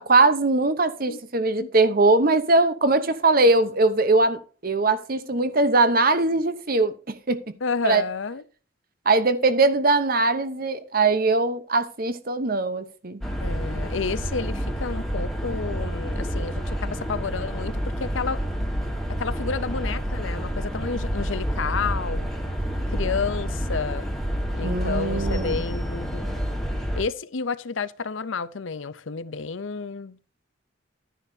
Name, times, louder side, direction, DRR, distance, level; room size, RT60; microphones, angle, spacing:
voice 1, 0.0-7.4 7.8-8.0 9.1-13.2 24.6-25.6, right 3 dB, 45° right, 0.9 m, -21 dB
voice 2, 7.6-8.4 13.4-18.4 19.2-22.3 22.9-24.1 24.5-26.3 26.9-30.2, left 5 dB, 75° left, 0.7 m, -30 dB
sound 1, 13.2-27.0, equal, ahead, 1.5 m, -28 dB
11.0 x 10.0 x 2.8 m
head